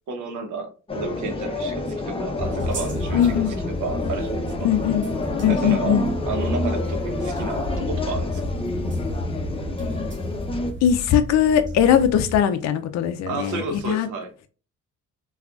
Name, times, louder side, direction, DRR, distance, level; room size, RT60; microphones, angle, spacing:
voice 1, 0.1-4.7 5.5-6.0 6.3-8.4 13.3-14.3, right 3 dB, 80° right, 0.8 m, -32 dB
sound 1, 0.9-10.7, left 2 dB, 20° left, 0.7 m, -29 dB
sound 2, 2.4-12.4, left 1 dB, 40° right, 1.1 m, -32 dB
voice 2, 3.1-3.6 4.6-5.0 5.4-6.1 10.8-14.1, left 9 dB, 65° left, 0.4 m, -20 dB
sound 3, 5.4-7.2, equal, 15° right, 1.0 m, -28 dB
3.5 x 2.4 x 2.3 m
cardioid pair, 90°, 30 cm